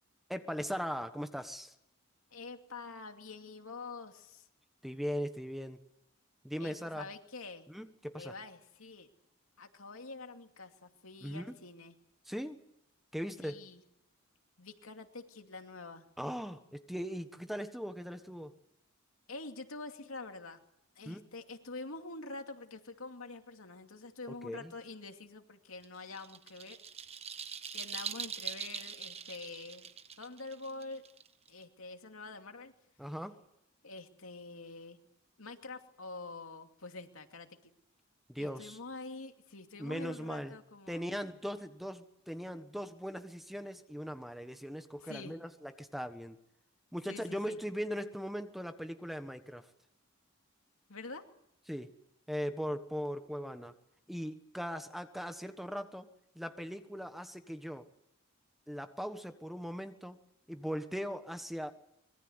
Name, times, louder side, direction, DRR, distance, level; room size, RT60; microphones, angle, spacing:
voice 1, 0.3-1.7 4.8-5.8 6.4-7.1 7.7-8.3 11.2-11.6 12.2-12.6 13.1-13.6 16.2-18.6 21.0-21.2 24.4-24.7 33.0-33.4 38.3-38.8 39.8-40.5 40.9-46.4 46.9-49.7 51.7-51.9 52.3-53.7 54.1-56.1 56.3-57.8 58.7-60.2 60.5-61.7, equal, ahead, 8 dB, 1.3 m, -39 dB
voice 2, 2.3-4.5 6.6-7.7 8.2-9.1 9.6-11.9 13.4-13.8 14.6-16.0 19.3-20.6 21.0-26.8 27.5-29.9 30.2-31.0 31.5-32.7 33.8-35.0 35.4-37.7 38.4-41.1 45.0-45.3 47.1-47.6 50.9-51.2, left 3 dB, 80° left, 5 dB, 2.6 m, -46 dB
sound 1, 25.8-31.6, right 7 dB, 30° right, 1.1 m, -43 dB
25.5 x 22.0 x 8.1 m, 0.77 s
head